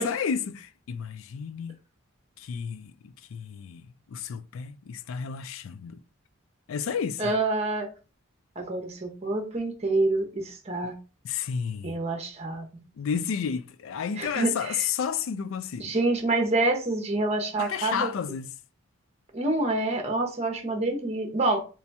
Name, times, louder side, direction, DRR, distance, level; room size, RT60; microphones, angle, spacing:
voice 1, 0.0-1.8 2.4-6.0 6.7-7.3 11.2-12.0 13.0-15.9 17.6-18.5, left 7 dB, 70° left, 0.3 m, -31 dB
voice 2, 7.2-7.9 8.6-11.0 11.8-12.7 14.2-14.8 15.8-18.1 19.3-21.6, right 2 dB, 30° right, 0.7 m, -27 dB
3.0 x 2.9 x 3.4 m
head